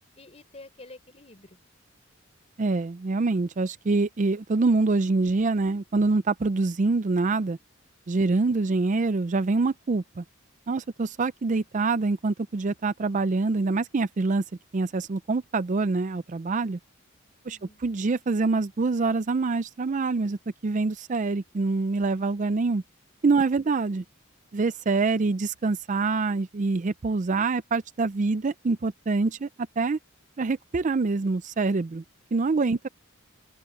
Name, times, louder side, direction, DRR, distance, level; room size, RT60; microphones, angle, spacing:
voice 1, 0.2-1.6 8.3-8.5 17.4-17.8 23.4-23.7, left 2 dB, 30° left, 4.1 m, -49 dB
voice 2, 2.6-7.6 8.1-10.2 10.7-14.4 14.7-16.8 17.5-20.4 20.6-22.8 23.2-24.0 24.5-29.5 29.8-30.0 30.4-32.0 32.3-32.9, right 3 dB, 35° right, 0.4 m, -25 dB
open air
head